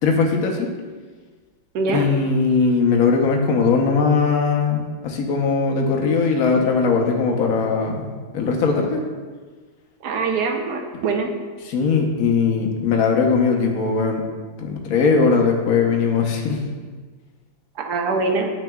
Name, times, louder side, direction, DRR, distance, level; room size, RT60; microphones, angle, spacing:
voice 1, 0.0-0.7 1.9-9.0 11.7-14.2 14.6-16.6, left 5 dB, 55° left, 1 dB, 1.2 m, -19 dB
voice 2, 10.0-11.3 17.8-18.5, right 4 dB, 65° right, 3 dB, 1.2 m, -23 dB
9.1 x 8.2 x 2.3 m, 1.4 s
omnidirectional pair, 2.1 m